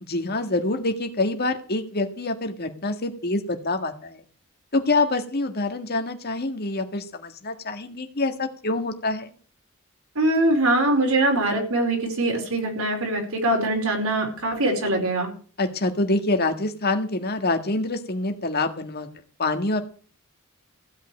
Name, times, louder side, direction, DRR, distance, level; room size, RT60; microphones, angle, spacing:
voice 1, 0.0-4.2 4.7-9.3 15.6-19.1 19.4-19.8, left 2 dB, 50° left, 6 dB, 1.8 m, -26 dB
voice 2, 10.1-15.3, right 1 dB, 85° right, 1 dB, 4.9 m, -22 dB
15.5 x 5.6 x 9.3 m, 0.41 s
head